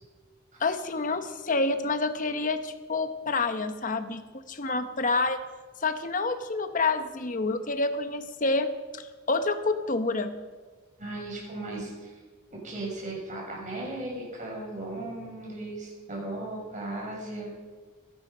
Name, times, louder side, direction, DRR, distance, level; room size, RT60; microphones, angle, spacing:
voice 1, 0.6-4.2 4.5-5.4 5.8-10.4, left 3 dB, 40° left, 9 dB, 1.0 m, -28 dB
voice 2, 11.0-12.2 12.5-17.5, right 2 dB, 40° right, -2 dB, 6.5 m, -36 dB
21.0 x 11.5 x 5.6 m, 1.4 s
head